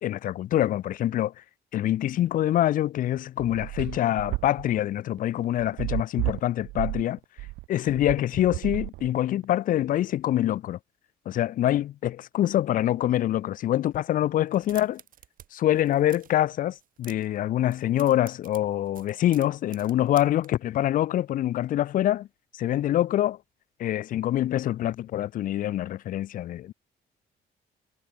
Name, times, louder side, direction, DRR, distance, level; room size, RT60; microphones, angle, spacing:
voice 1, 0.0-1.3 1.7-7.2 7.7-10.8 11.3-15.0 15.5-22.3 22.5-23.4 23.8-26.7, left 12 dB, 55° left, 0.6 m, -25 dB
sound 1, 2.9-9.4, right 22 dB, 85° right, 0.4 m, -32 dB
sound 2, 14.5-15.5 15.7-16.4 16.7-17.4 17.6-20.5, right 10 dB, 55° right, 3.2 m, -49 dB
cardioid pair, 110°, 17 cm